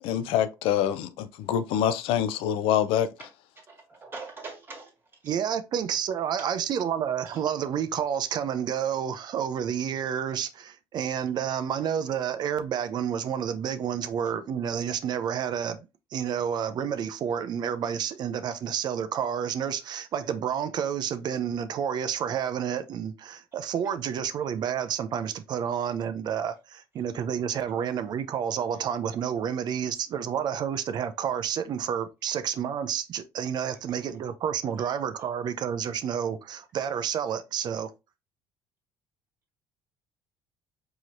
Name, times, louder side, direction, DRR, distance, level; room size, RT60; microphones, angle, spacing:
voice 1, 0.0-3.3, left 10 dB, 80° left, 0.5 m, -26 dB
voice 2, 3.6-4.9, right 3 dB, 25° right, 1.7 m, -42 dB
voice 3, 5.2-15.8 16.1-37.9, right 8 dB, 50° right, 0.5 m, -30 dB
4.7 x 3.0 x 2.5 m
cardioid pair, 105°, 9 cm